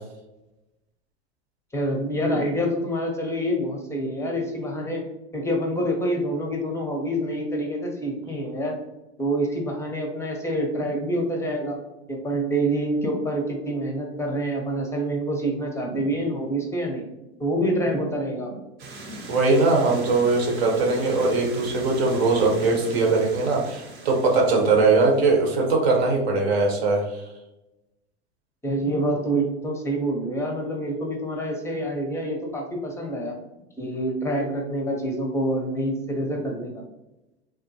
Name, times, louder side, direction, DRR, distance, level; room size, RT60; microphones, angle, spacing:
voice 1, 1.7-5.0 5.3-8.8 9.2-11.8 12.1-17.0 17.4-18.6 28.6-33.3 33.8-36.8, right 1 dB, 10° left, 1 dB, 0.6 m, -26 dB
sound 1, 18.8-25.7, right 2 dB, 40° right, 0.8 m, -40 dB
voice 2, 19.3-27.2, right 3 dB, 70° right, 0 dB, 1.0 m, -21 dB
3.5 x 2.1 x 2.7 m, 0.95 s
hypercardioid pair, 95°, 33 cm